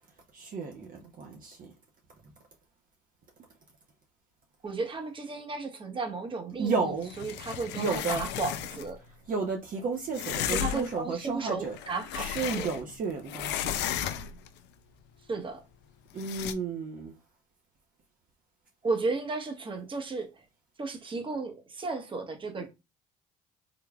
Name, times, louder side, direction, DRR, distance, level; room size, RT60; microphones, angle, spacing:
voice 1, 0.3-1.7 6.6-7.1 7.8-8.3 9.3-13.9 16.1-17.1, right 4 dB, 50° right, 0.9 m, -33 dB
voice 2, 4.6-9.0 10.5-12.7 15.3-15.6 18.8-20.3 20.8-22.7, right 3 dB, 25° right, 1.1 m, -34 dB
sound 1, 7.0-8.9 10.1-11.0 11.6-13.0 13.3-14.5 16.2-16.5, left 11 dB, 70° left, 0.5 m, -34 dB
3.9 x 3.3 x 2.4 m
supercardioid pair, 80°, 19 cm